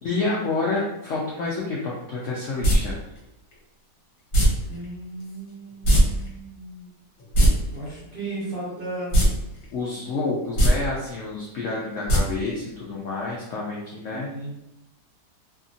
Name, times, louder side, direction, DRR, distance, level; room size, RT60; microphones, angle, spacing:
voice 1, 0.0-3.0 9.7-14.3, left 3 dB, 75° left, -4 dB, 0.7 m, -28 dB
sound 1, 2.6-2.8 4.3-4.5 5.8-6.0 6.3-6.4 7.2-7.5 9.1-9.3 9.6-9.7 10.5-10.7 12.1-12.2 12.5-12.6, right 1 dB, 55° left, 1.1 m, -17 dB
voice 2, 4.7-6.9 7.6-9.1 14.0-14.5, right 2 dB, 45° right, -8 dB, 0.7 m, -35 dB
2.8 x 2.5 x 2.6 m, 0.90 s
omnidirectional pair, 1.8 m